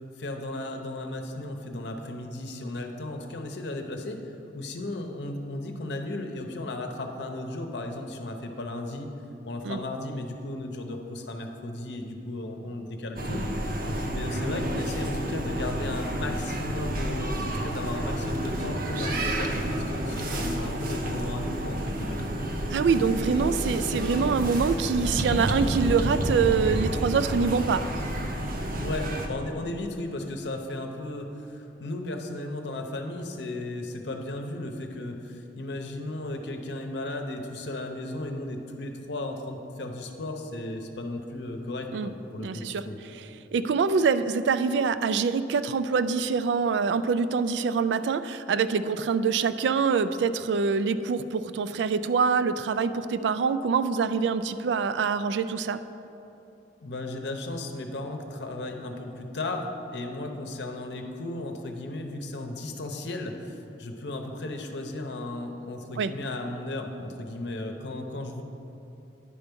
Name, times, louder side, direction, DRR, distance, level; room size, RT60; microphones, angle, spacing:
voice 1, 0.2-9.1 9.4-13.5 13.7-13.8 14.1-22.2 28.8-43.0 56.8-68.4, left 2 dB, 70° left, 4 dB, 0.7 m, -35 dB
sound 1, 13.2-29.3, right 1 dB, 55° right, 0.8 m, -30 dB
voice 2, 22.7-27.8 41.9-42.1 42.4-42.8 43.5-55.8 66.0-66.1, right 5 dB, 75° right, 13 dB, 0.3 m, -25 dB
sound 2, 22.9-28.1, left 1 dB, 5° left, 0.4 m, -38 dB
10.0 x 4.5 x 5.2 m, 2.9 s
head